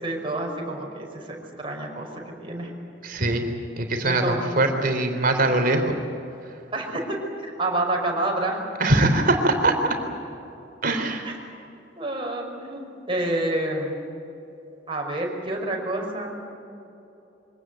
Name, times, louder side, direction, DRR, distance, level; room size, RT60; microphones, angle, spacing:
voice 1, 0.0-2.7 4.0-4.4 6.7-8.6 11.2-11.3 12.0-14.0 14.9-16.3, right 1 dB, 30° right, 0 dB, 5.4 m, -28 dB
voice 2, 3.0-3.4 3.8-5.9 8.8-9.7 10.8-11.3, right 2 dB, 50° right, 5 dB, 3.7 m, -22 dB
25.5 x 18.5 x 9.2 m, 2.9 s
head